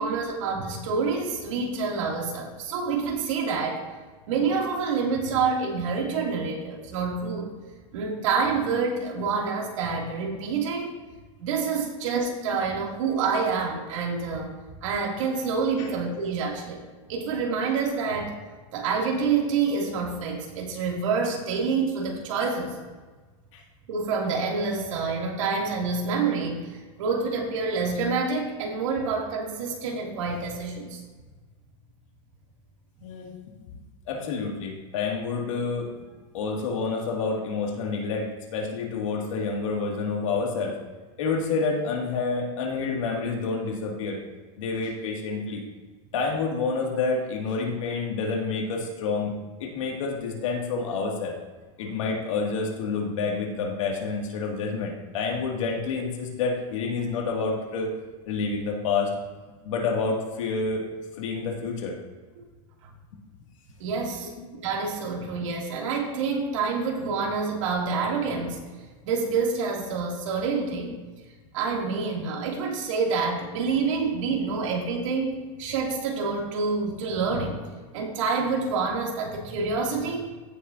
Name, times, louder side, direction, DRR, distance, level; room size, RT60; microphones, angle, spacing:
voice 1, 0.0-3.8 4.3-7.5 7.9-11.0 11.4-14.5 14.8-16.8 17.1-18.3 18.7-22.7 23.9-31.0 63.8-68.6 69.0-70.9 71.5-75.3 75.6-77.7 77.9-80.3, right 4 dB, 75° right, -2 dB, 2.7 m, -27 dB
voice 2, 33.0-33.4 34.1-36.0 36.3-40.8 41.2-44.2 44.6-45.6 46.1-49.3 49.6-51.4 51.8-57.9 58.3-59.1 59.6-60.9 61.2-62.0 64.2-64.5, left 4 dB, 80° left, 0 dB, 2.3 m, -28 dB
16.0 x 6.7 x 2.8 m, 1.3 s
supercardioid pair, 165°, 16 cm